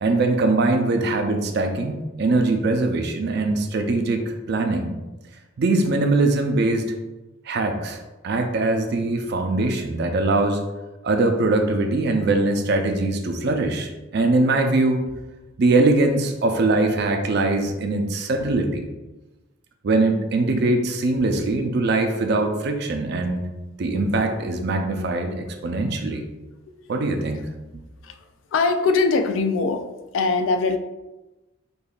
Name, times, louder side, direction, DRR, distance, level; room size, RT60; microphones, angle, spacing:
voice 1, 0.0-4.9 5.6-6.9 7.5-10.6 11.0-15.2 15.6-18.8 19.8-23.4 23.8-26.2 26.9-27.5, right 2 dB, 55° right, 4 dB, 0.4 m, -22 dB
voice 2, 28.5-29.9 30.1-30.8, left 4 dB, 70° left, 7 dB, 0.3 m, -21 dB
5.2 x 2.4 x 2.4 m, 1.1 s
head